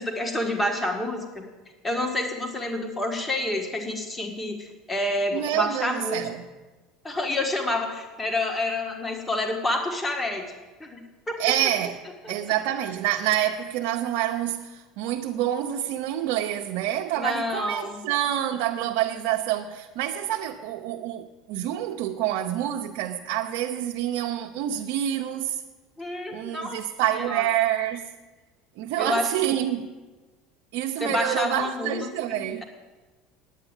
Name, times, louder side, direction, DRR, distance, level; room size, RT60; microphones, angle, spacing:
voice 1, 0.0-1.4 1.8-6.2 7.0-10.5 10.8-11.4 12.2-12.3 17.2-18.0 26.0-26.8 27.1-27.4 29.0-29.3 31.0-32.6, left 1 dB, 15° left, 1.7 m, -28 dB
voice 2, 5.3-6.5 11.4-12.0 12.3-25.6 26.3-28.1 28.8-29.9 30.7-32.6, right 12 dB, 70° right, 0.7 m, -27 dB
9.8 x 8.3 x 9.0 m
supercardioid pair, 120°, 0 cm